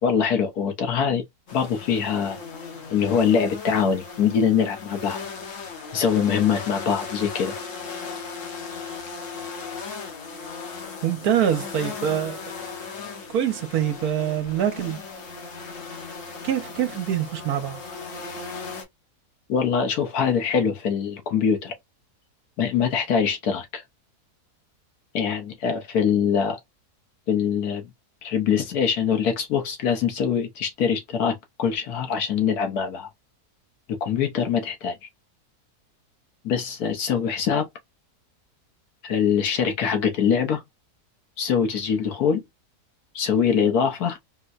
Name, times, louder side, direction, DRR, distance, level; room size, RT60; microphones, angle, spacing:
voice 1, 0.0-1.2 1.5-2.4 2.9-5.2 5.9-7.5 19.5-21.7 22.6-23.8 25.1-26.6 27.3-27.8 28.2-33.1 33.9-35.0 36.4-37.7 39.0-40.6 41.4-42.4 43.1-44.2, left 7 dB, 75° left, 1.4 m, -23 dB
sound 1, 1.5-18.8, left 5 dB, 55° left, 1.2 m, -37 dB
voice 2, 11.0-12.4 13.3-15.0 16.4-17.8, right 9 dB, 70° right, 1.3 m, -24 dB
4.4 x 2.1 x 2.4 m
omnidirectional pair, 1.7 m